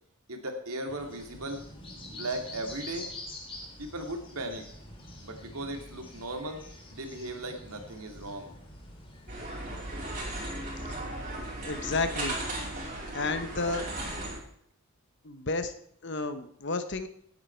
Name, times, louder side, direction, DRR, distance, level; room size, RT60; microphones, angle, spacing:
voice 1, 0.3-1.6 2.1-3.1 3.8-4.6 5.2-6.6 6.9-8.6 10.4-10.5 10.8-10.9, right 1 dB, 80° right, 4 dB, 2.5 m, -37 dB
sound 1, 0.9-11.0, left 1 dB, 25° left, 2.8 m, -46 dB
sound 2, 9.3-14.4, right 1 dB, 35° right, 4.8 m, -36 dB
voice 2, 11.6-12.4 13.1-13.8 15.2-15.7 16.0-17.1, left 3 dB, 55° left, 10 dB, 1.1 m, -31 dB
17.5 x 9.4 x 4.6 m, 0.68 s
head